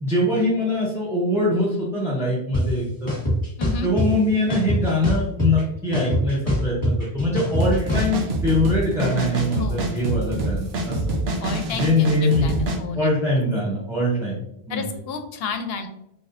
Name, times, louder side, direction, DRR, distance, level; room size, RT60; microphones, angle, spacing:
voice 1, 0.0-3.1 3.8-11.1 11.7-12.5 12.9-14.4 14.7-14.9, left 1 dB, 5° right, -7 dB, 0.6 m, -23 dB
sound 1, 2.5-2.6 3.1-4.1 4.5-5.6 5.9-8.1, left 1 dB, 30° left, 1.3 m, -23 dB
voice 2, 3.6-3.9 9.6-10.1 11.4-13.1 14.7-15.9, left 4 dB, 75° left, 7 dB, 0.8 m, -32 dB
sound 2, 7.6-12.8, right 2 dB, 80° right, 1.0 m, -26 dB
4.0 x 3.2 x 2.6 m, 0.81 s
omnidirectional pair, 1.0 m